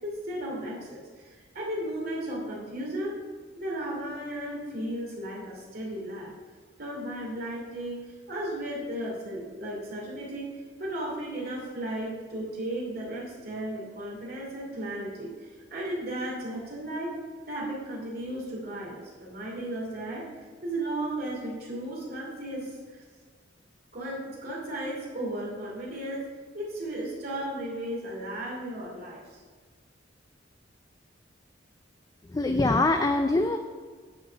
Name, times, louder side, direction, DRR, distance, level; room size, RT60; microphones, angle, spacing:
voice 1, 0.0-3.2 3.5-6.3 6.8-17.1 17.5-20.3 20.6-23.0 23.9-26.3 26.5-29.4, right 1 dB, 55° right, -4 dB, 2.7 m, -35 dB
voice 2, 32.3-33.6, left 2 dB, 20° left, 6 dB, 0.3 m, -23 dB
10.0 x 4.6 x 6.2 m, 1.5 s
head